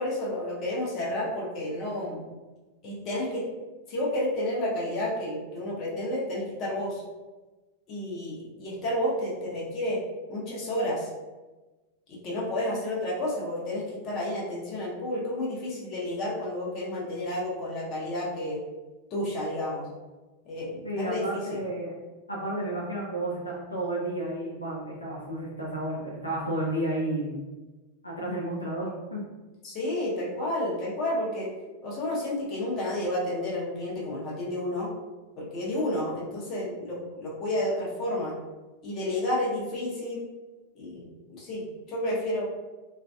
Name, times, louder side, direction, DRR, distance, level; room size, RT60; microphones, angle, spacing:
voice 1, 0.0-2.2 2.8-3.5 3.9-7.0 7.9-10.0 10.3-11.1 12.1-18.6 19.1-19.8 20.5-21.6 29.6-31.5 31.8-34.9 35.4-38.3 38.8-40.2 40.7-42.4, left 1 dB, 35° left, -5 dB, 0.8 m, -31 dB
voice 2, 20.8-21.9 22.3-27.4 28.0-29.2, right 1 dB, 85° left, -4 dB, 0.5 m, -32 dB
2.5 x 2.4 x 2.2 m, 1.2 s
figure-of-eight pair, 90°, 0 cm